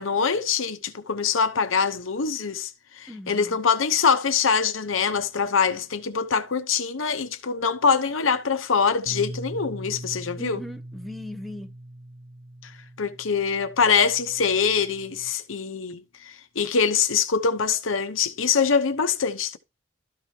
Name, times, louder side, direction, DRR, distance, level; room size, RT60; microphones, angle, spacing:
voice 1, 0.0-2.7 3.0-10.6 12.6-12.7 13.0-19.6, left 6 dB, 75° left, 0.9 m, -24 dB
voice 2, 3.1-3.6 10.4-11.7, left 1 dB, ahead, 0.7 m, -38 dB
Bass guitar, 9.1-15.3, right 1 dB, 90° right, 1.0 m, -41 dB
13.0 x 4.9 x 2.9 m
head